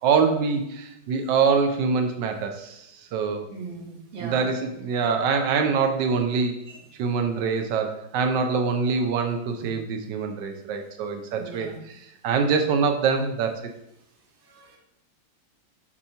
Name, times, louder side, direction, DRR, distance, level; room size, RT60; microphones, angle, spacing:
voice 1, 0.0-3.4 4.2-6.5 7.0-12.0 12.2-13.6, right 5 dB, 85° right, 5 dB, 1.3 m, -24 dB
voice 2, 3.5-4.4 6.7-6.8 11.3-11.8 14.5-14.8, right 4 dB, 45° right, -1 dB, 1.3 m, -39 dB
7.0 x 2.8 x 5.5 m, 0.83 s
omnidirectional pair, 1.9 m